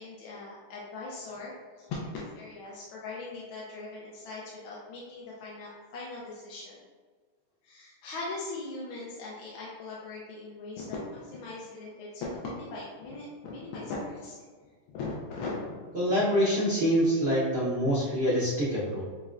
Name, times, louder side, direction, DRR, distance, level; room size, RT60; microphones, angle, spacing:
voice 1, 0.0-6.8 7.6-14.4 14.9-15.8, left 3 dB, 85° left, -5 dB, 1.4 m, -39 dB
voice 2, 15.9-19.0, equal, 85° right, -8 dB, 0.5 m, -25 dB
5.7 x 2.1 x 2.4 m, 1.5 s
omnidirectional pair, 2.2 m